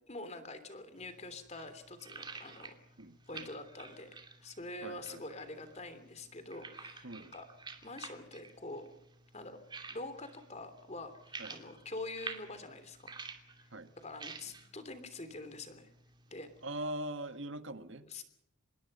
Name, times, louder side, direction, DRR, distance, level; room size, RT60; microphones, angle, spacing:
voice 1, 0.1-2.8 3.3-7.5 7.8-8.9 9.3-9.6 9.9-13.1 14.0-15.9 16.3-16.9 18.0-18.2, left 2 dB, 30° left, 10 dB, 3.1 m, -45 dB
sound 1, 1.0-16.7, right 4 dB, 20° right, 2.5 m, -51 dB
voice 2, 3.0-3.5 4.8-5.2 7.0-7.3 11.4-11.6 13.7-13.9 16.6-18.1, right 1 dB, 60° right, 10 dB, 1.7 m, -42 dB
26.5 x 21.0 x 5.5 m, 0.77 s
head